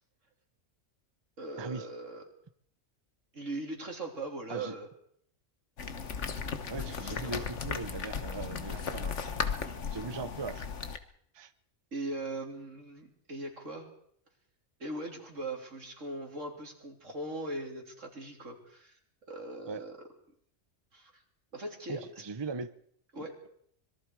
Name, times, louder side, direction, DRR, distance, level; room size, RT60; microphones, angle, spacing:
voice 1, 1.4-2.2 3.3-4.9 6.8-7.5 11.9-13.9 14.8-19.0 19.3-20.1 20.9-21.2 21.5-22.0 23.1-23.4, right 2 dB, 80° right, 2 dB, 3.9 m, -40 dB
sound 1, 5.8-11.0, left 6 dB, 70° left, 1.6 m, -36 dB
voice 2, 6.7-9.6 9.9-10.7 11.3-11.5 19.7-19.9 21.9-22.7, right 4 dB, 25° right, 12 dB, 0.7 m, -39 dB
25.5 x 22.5 x 4.8 m, 0.66 s
omnidirectional pair, 1.3 m